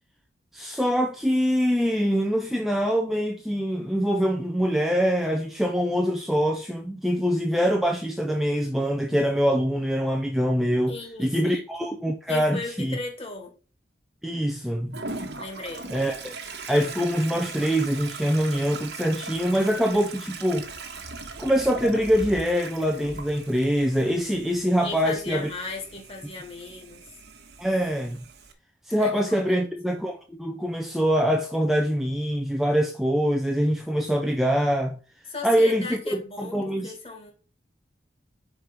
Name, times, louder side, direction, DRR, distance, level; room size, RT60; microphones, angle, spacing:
voice 1, 0.5-13.0 14.2-15.0 15.9-16.3 16.7-20.7 21.4-25.5 27.6-28.2 28.9-35.0 35.4-36.9, equal, ahead, 0.5 m, -24 dB
voice 2, 10.9-11.6 12.3-13.5 15.4-15.9 24.8-27.0 29.0-29.7 35.3-37.3, left 3 dB, 30° left, 2.0 m, -37 dB
Toilet flush, 14.9-28.5, right 3 dB, 65° right, 1.2 m, -39 dB
5.2 x 4.5 x 5.9 m
head